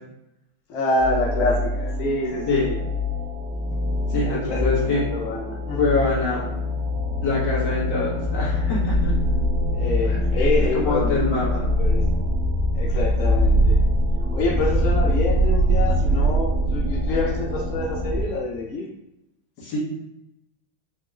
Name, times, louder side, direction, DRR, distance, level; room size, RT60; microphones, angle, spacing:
voice 1, 0.7-2.8 4.2-4.7 5.1-5.9 9.7-12.0 12.7-13.8 14.3-18.9, left 2 dB, 90° left, -3 dB, 1.6 m, -27 dB
sound 1, 0.9-18.2, equal, 90° right, 0.7 m, -23 dB
voice 2, 4.1-5.0 5.8-6.4 7.2-9.2 10.0-10.2 10.7-11.7 19.6-19.8, left 3 dB, 60° left, -6 dB, 1.8 m, -24 dB
4.3 x 2.9 x 2.4 m, 0.87 s
omnidirectional pair, 2.2 m